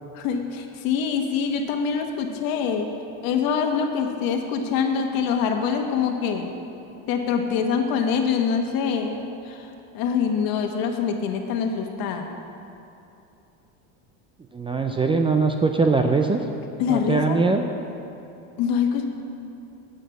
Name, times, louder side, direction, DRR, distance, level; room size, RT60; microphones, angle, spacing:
voice 1, 0.1-2.9 3.2-6.5 7.1-12.3 16.8-17.4 18.6-19.0, left 6 dB, 60° left, 4 dB, 1.3 m, -25 dB
voice 2, 14.5-16.4 16.9-17.6, right 4 dB, 15° right, 4 dB, 0.4 m, -21 dB
9.0 x 6.3 x 7.7 m, 2.7 s
supercardioid pair, 110°, 39 cm